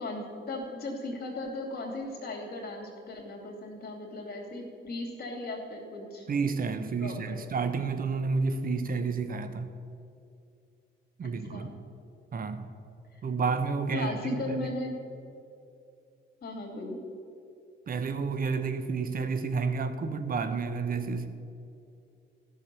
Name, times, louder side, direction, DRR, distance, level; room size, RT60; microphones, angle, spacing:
voice 1, 0.0-6.3 7.0-7.4 11.2-11.8 13.1-13.2 13.9-15.0 16.4-17.0, left 2 dB, 50° left, 1 dB, 2.7 m, -37 dB
voice 2, 6.3-9.7 11.2-11.7 12.3-12.7 13.2-14.7 17.9-21.3, right 4 dB, 45° right, 10 dB, 1.0 m, -30 dB
13.5 x 6.3 x 6.9 m, 2.5 s
cardioid pair, 90°, 20 cm